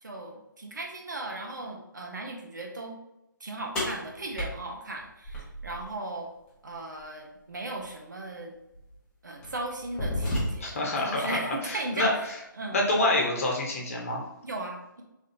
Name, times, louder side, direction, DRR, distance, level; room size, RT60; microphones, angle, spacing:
voice 1, 0.0-3.0 3.4-6.3 6.6-8.6 9.2-12.3 12.6-12.8 14.4-15.0, right 2 dB, 60° right, 1 dB, 1.0 m, -37 dB
sound 1, 3.7-5.9 7.8-7.9 8.7-8.9 9.4-10.9, left 1 dB, 10° left, 1.1 m, -32 dB
voice 2, 10.6-12.1 12.7-14.2, left 2 dB, 40° left, -1 dB, 1.2 m, -27 dB
5.3 x 3.5 x 2.7 m, 0.90 s
figure-of-eight pair, 145°, 11 cm